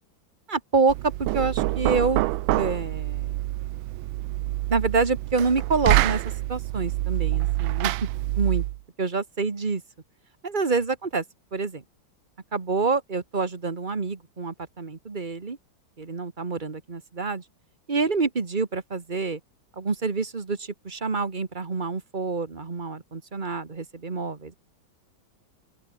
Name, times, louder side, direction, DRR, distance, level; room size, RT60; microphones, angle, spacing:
voice 1, 0.5-2.2 2.5-3.4 4.7-6.2 6.5-8.1 8.4-8.6 9.0-9.8 10.4-11.2 11.5-11.8 12.5-15.6 16.0-17.4 17.9-19.4 19.8-24.5, right 4 dB, 25° right, 1.6 m, -27 dB
Knock, 0.9-8.8, right 17 dB, 80° right, 1.4 m, -26 dB
open air
omnidirectional pair, 2.2 m